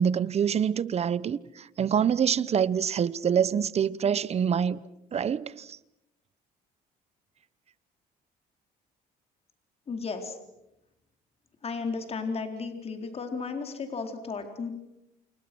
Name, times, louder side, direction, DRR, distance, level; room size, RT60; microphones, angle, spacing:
voice 1, 0.0-4.8 5.1-5.8, right 8 dB, 40° right, 1.0 m, -26 dB
voice 2, 9.9-10.4 11.6-14.7, left 4 dB, 35° left, 4.1 m, -34 dB
29.5 x 28.5 x 6.2 m
cardioid pair, 110°, 17 cm